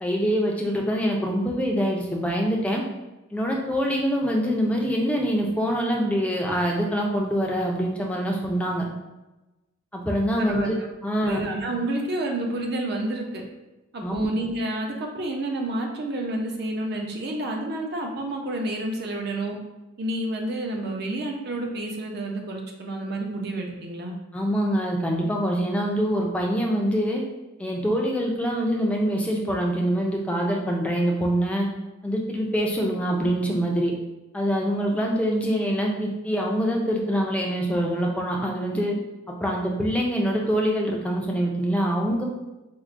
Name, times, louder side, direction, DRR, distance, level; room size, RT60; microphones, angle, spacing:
voice 1, 0.0-2.8 3.3-8.9 9.9-10.8 11.0-11.4 14.0-14.3 24.3-27.2 27.6-31.7 32.0-33.9 34.3-39.0 39.3-42.2, equal, 5° left, -1 dB, 0.4 m, -24 dB
voice 2, 10.4-10.8 11.3-13.4 13.9-19.6 20.0-24.1, right 1 dB, 55° right, 1 dB, 0.5 m, -29 dB
4.4 x 2.1 x 2.5 m, 1.0 s
head